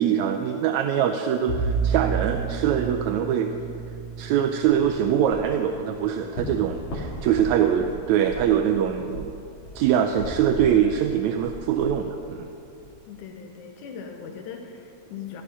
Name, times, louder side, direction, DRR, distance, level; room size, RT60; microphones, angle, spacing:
voice 1, 0.0-3.5 4.2-9.3 9.8-12.5, right 9 dB, 80° right, 6 dB, 1.9 m, -23 dB
Bowed string instrument, 1.5-6.6, right 5 dB, 40° left, 4.0 m, -31 dB
sound 1, 4.5-12.9, equal, 65° left, 3.8 m, -39 dB
voice 2, 13.1-15.4, left 6 dB, 85° left, 3 dB, 2.5 m, -39 dB
14.5 x 12.5 x 5.5 m, 2.6 s
omnidirectional pair, 3.4 m